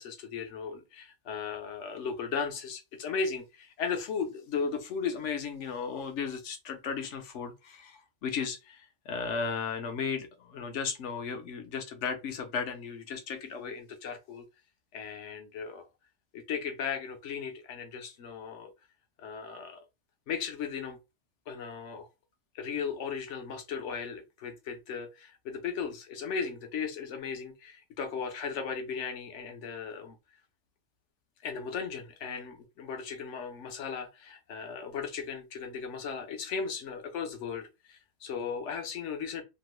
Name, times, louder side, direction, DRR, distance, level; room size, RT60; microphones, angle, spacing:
voice 1, 0.0-14.4 14.9-15.9 16.3-18.7 19.2-19.8 20.3-21.0 21.5-22.1 22.5-30.2 31.4-39.4, left 6 dB, 85° left, 1.0 m, -36 dB
3.0 x 2.0 x 3.0 m
omnidirectional pair, 1.2 m